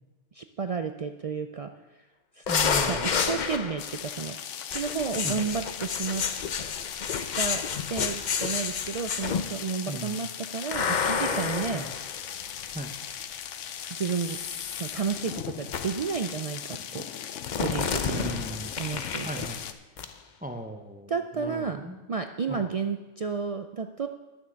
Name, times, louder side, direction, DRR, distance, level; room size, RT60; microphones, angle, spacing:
voice 1, 0.3-1.7 2.4-2.5 2.9-6.2 7.4-12.2 13.9-14.4 14.8-17.0 17.5-18.3 18.8-19.4 21.1-24.1, right 5 dB, 70° right, 7 dB, 0.3 m, -32 dB
sound 1, 2.5-4.0 4.7-9.7 10.7-12.9 13.8-15.0 15.7-16.1 17.4-19.7 20.0-20.1, left 6 dB, 50° left, 0.7 m, -30 dB
voice 2, 2.5-3.1 5.2-5.4 9.9-10.2 11.7-11.9 12.7-12.9 18.0-18.7 19.2-19.6 20.4-22.0 22.5-22.6, right 2 dB, 10° right, 5 dB, 0.5 m, -37 dB
sound 2, 3.8-19.7, left 9 dB, 85° left, 1.0 m, -39 dB
11.0 x 7.3 x 6.3 m, 1.1 s
omnidirectional pair, 1.2 m